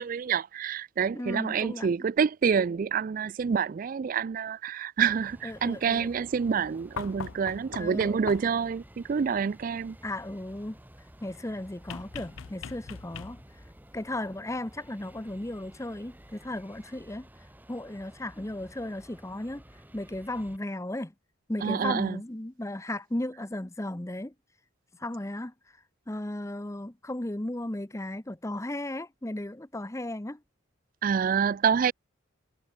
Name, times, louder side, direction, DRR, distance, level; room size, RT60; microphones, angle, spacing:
voice 1, 0.0-10.0 21.6-22.2 31.0-31.9, right 6 dB, 40° right, 0.3 m, -27 dB
voice 2, 1.1-1.9 5.4-6.1 7.8-8.2 10.0-10.8 11.2-13.4 13.9-17.3 17.7-19.6 19.9-21.1 21.5-24.3 25.0-25.5 26.1-30.4, left 1 dB, 15° left, 0.7 m, -35 dB
Ice Spell - Blizzard Wind Blast, 5.0-20.6, equal, 10° right, 1.6 m, -53 dB
Knock Door, 7.0-8.7 11.9-13.6 15.2-15.3, left 6 dB, 70° left, 0.5 m, -41 dB
head